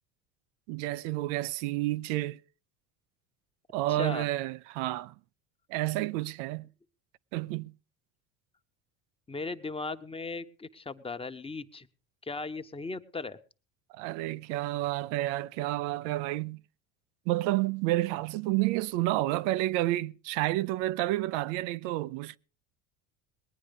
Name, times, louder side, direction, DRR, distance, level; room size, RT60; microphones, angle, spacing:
voice 1, 0.7-2.4 3.7-5.1 5.7-6.7 7.3-7.7 13.9-16.6 17.3-22.4, right 17 dB, 80° right, 0.7 m, -30 dB
voice 2, 3.9-4.3 9.3-11.9 12.2-13.4, left 3 dB, 15° left, 1.1 m, -37 dB
20.0 x 9.7 x 5.3 m
supercardioid pair, 100°, 36 cm